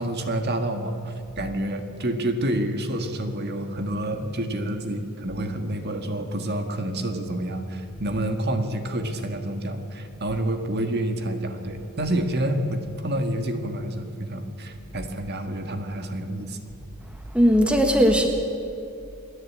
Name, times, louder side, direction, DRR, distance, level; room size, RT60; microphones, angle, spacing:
voice 1, 0.0-16.6, right 1 dB, 50° right, 6 dB, 1.7 m, -28 dB
voice 2, 17.3-18.3, equal, 5° right, 3 dB, 1.4 m, -18 dB
28.0 x 11.0 x 8.6 m, 2.7 s
head